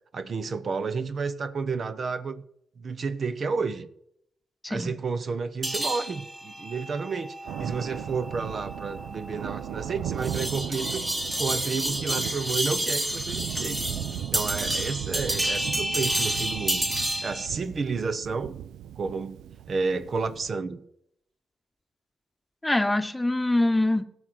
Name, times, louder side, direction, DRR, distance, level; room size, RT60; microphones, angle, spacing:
voice 1, 0.1-2.4 2.8-3.9 4.7-11.1 11.4-13.9 14.3-16.9 17.2-18.6 19.0-19.4 19.7-20.8, right 4 dB, 50° right, 0.9 m, -31 dB
sound 1, 5.6-17.5, right 1 dB, 20° right, 1.9 m, -30 dB
Thunder, 7.4-20.5, right 10 dB, 85° right, 0.4 m, -37 dB
voice 2, 22.6-24.0, left 1 dB, 15° left, 1.1 m, -24 dB
17.0 x 6.4 x 5.8 m
cardioid pair, 70°, 0 cm